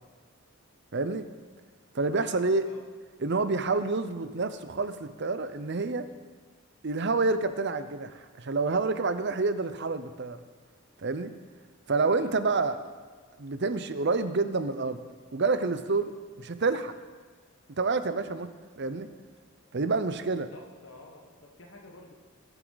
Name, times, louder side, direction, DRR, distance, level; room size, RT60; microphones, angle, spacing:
voice 1, 0.9-1.3 1.9-2.7 3.2-6.1 6.8-10.4 11.0-11.3 11.9-12.8 13.4-15.0 15.3-16.1 16.4-16.9 17.8-18.5 18.8-19.1 19.7-20.5, right 3 dB, 55° right, 11 dB, 0.7 m, -28 dB
voice 2, 2.3-2.8 12.2-12.8 20.5-22.1, left 2 dB, 60° left, 0 dB, 1.4 m, -50 dB
20.5 x 8.1 x 4.0 m, 1.5 s
head